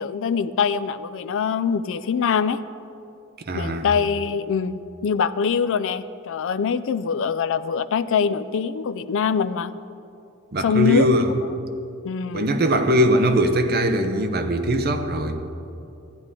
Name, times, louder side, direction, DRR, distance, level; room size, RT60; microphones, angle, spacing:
voice 1, 0.0-2.6 3.5-9.7 10.6-11.1 12.0-12.5, left 6 dB, 65° left, 13 dB, 0.4 m, -23 dB
voice 2, 3.5-3.9 10.5-11.3 12.3-15.4, equal, 50° right, 6 dB, 0.7 m, -21 dB
13.5 x 9.8 x 3.7 m, 2.7 s
head